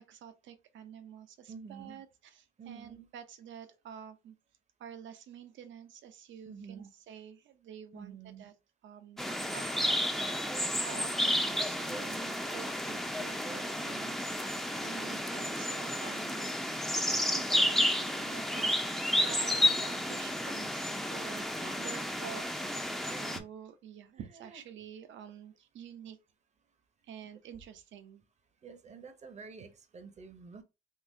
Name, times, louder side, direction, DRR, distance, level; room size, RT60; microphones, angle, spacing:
voice 1, 0.0-4.4 4.8-8.5 8.8-14.5 14.8-20.8 21.1-22.7 22.9-26.2 27.0-28.2, right 8 dB, 70° right, 0.7 m, -49 dB
voice 2, 1.5-2.0 2.6-3.1 6.5-6.9 7.9-8.5 21.6-22.1 23.1-23.3 24.4-24.6 28.6-30.6, right 5 dB, 35° right, 0.7 m, -48 dB
sound 1, 9.2-23.4, left 1 dB, ahead, 0.5 m, -32 dB
3.7 x 2.7 x 2.6 m
cardioid pair, 90°, 20 cm